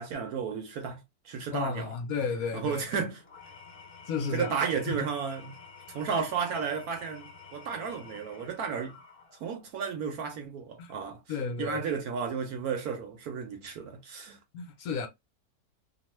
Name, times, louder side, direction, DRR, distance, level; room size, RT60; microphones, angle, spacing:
voice 1, 0.0-1.9 2.5-3.2 4.3-5.5 5.9-9.0 9.4-11.2 11.6-14.4, right 6 dB, 70° right, 1.0 m, -33 dB
voice 2, 1.5-3.0 4.1-4.6 4.9-5.0 10.8-10.9 11.3-11.8 14.5-15.1, left 5 dB, 65° left, 1.0 m, -33 dB
Engine / Tools, 3.2-9.6, left 5 dB, 45° left, 0.8 m, -50 dB
2.9 x 2.1 x 3.0 m
omnidirectional pair, 1.9 m